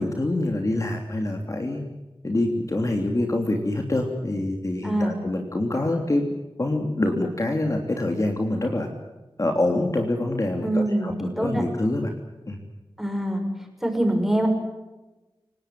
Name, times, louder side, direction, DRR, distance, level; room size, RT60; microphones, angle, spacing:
voice 1, 0.0-1.8 2.2-6.2 6.6-8.9 9.4-12.1 12.5-12.6, left 1 dB, 35° left, 3 dB, 3.1 m, -25 dB
voice 2, 4.8-5.1 10.6-11.6 13.0-13.4 13.8-14.5, right 1 dB, 5° right, 3 dB, 6.5 m, -24 dB
29.0 x 18.5 x 7.7 m, 1.1 s
wide cardioid pair, 85°, 9 cm